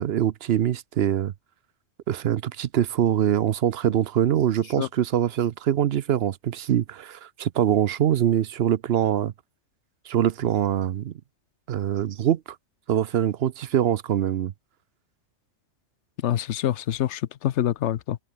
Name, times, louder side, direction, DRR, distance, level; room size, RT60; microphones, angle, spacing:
voice 1, 0.0-1.3 2.1-9.3 10.1-11.1 11.7-12.4 12.9-14.5, right 10 dB, 60° right, 0.8 m, -23 dB
voice 2, 16.2-18.2, left 11 dB, 65° left, 1.0 m, -26 dB
omnidirectional pair, 1.3 m